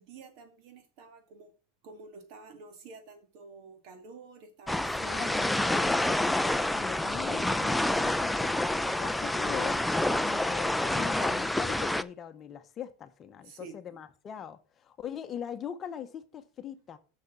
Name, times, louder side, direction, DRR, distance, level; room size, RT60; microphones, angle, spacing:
voice 1, 0.0-1.5 1.8-5.8 13.4-14.0, right 4 dB, 60° right, 2.0 m, -50 dB
sound 1, 4.7-12.0, left 1 dB, 5° left, 0.4 m, -28 dB
voice 2, 5.0-8.6 9.0-9.8 10.2-17.0, left 9 dB, 30° left, 0.9 m, -41 dB
6.5 x 6.4 x 7.1 m
supercardioid pair, 130°, 0 cm